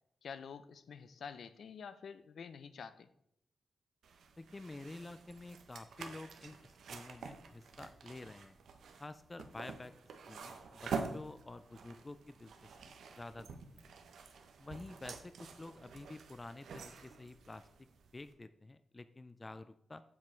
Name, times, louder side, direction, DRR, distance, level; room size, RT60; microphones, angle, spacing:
voice 1, 0.2-3.1, left 6 dB, 65° left, 13 dB, 0.6 m, -48 dB
sound 1, 4.0-18.3, right 5 dB, 85° right, 0.9 m, -48 dB
voice 2, 4.4-6.6 6.9-8.5 9.0-9.9 10.3-12.8 13.2-13.5 14.6-17.7 18.1-20.0, left 2 dB, 20° left, 12 dB, 0.3 m, -49 dB
7.6 x 7.3 x 4.3 m, 0.73 s
wide cardioid pair, 165°, 0 cm